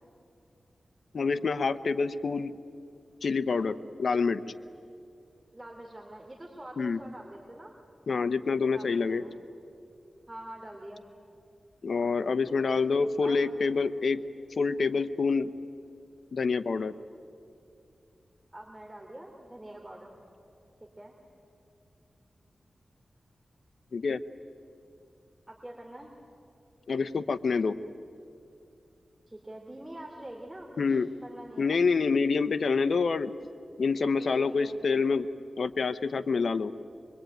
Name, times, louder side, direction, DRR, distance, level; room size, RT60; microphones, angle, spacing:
voice 1, 1.1-2.5 3.2-4.4 6.8-7.0 8.1-9.2 11.8-14.2 14.6-15.5 16.3-16.9 23.9-24.2 26.9-27.8 30.8-31.1 31.6-33.3 33.8-35.3 35.6-36.7, left 4 dB, 75° left, 12 dB, 0.9 m, -27 dB
voice 2, 5.5-7.7 8.7-9.3 10.3-11.1 13.2-13.4 18.5-20.2 20.8-21.1 25.5-26.1 29.3-31.8 34.1-34.8, right 1 dB, 20° right, 0 dB, 3.0 m, -45 dB
24.5 x 23.0 x 9.2 m, 2.5 s
wide cardioid pair, 70°, 0 cm